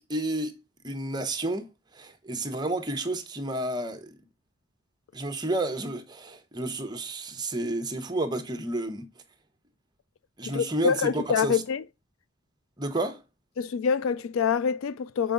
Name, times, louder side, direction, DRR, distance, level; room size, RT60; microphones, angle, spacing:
voice 1, 0.1-1.7 1.9-4.1 5.1-9.0 10.4-11.6 12.8-13.2, right 2 dB, 20° right, 0.9 m, -31 dB
voice 2, 10.4-11.8 13.6-15.3, left 6 dB, 65° left, 0.3 m, -26 dB
6.8 x 4.6 x 3.8 m
head